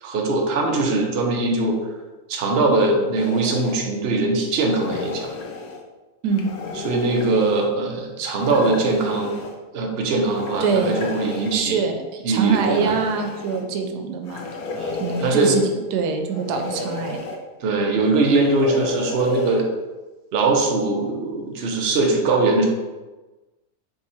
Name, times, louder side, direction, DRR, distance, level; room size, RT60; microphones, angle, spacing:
voice 1, 0.0-1.8 2.3-5.3 6.8-9.3 9.7-11.8 12.2-13.0 14.7-15.5 17.6-19.7 20.3-22.7, right 3 dB, 55° right, 1 dB, 0.7 m, -21 dB
sound 1, 3.1-3.8 4.6-5.8 6.3-7.7 8.4-9.5 10.2-11.6 12.3-13.6 14.2-15.7 16.3-17.4 18.1-19.6, left 3 dB, 75° left, 1.0 m, -32 dB
voice 2, 10.6-11.0 11.5-14.5 15.0-17.2, right 5 dB, 90° right, 4 dB, 1.1 m, -24 dB
3.7 x 2.9 x 4.2 m, 1.2 s
omnidirectional pair, 1.7 m